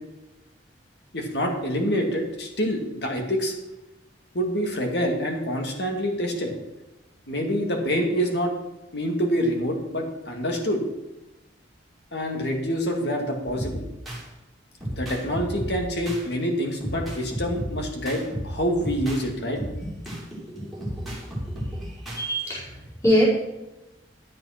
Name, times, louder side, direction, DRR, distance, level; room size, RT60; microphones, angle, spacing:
voice 1, 1.1-3.5 4.3-6.5 7.3-8.5 8.9-10.8 12.1-13.9 14.9-19.6, equal, 60° left, 2 dB, 2.2 m, -26 dB
sound 1, 13.5-14.2 14.8-16.2 16.8-19.2 19.6-22.2, equal, ahead, 3.0 m, -33 dB
voice 2, 22.1-23.2, equal, 15° left, -9 dB, 4.8 m, -22 dB
11.0 x 7.7 x 5.8 m, 0.99 s
head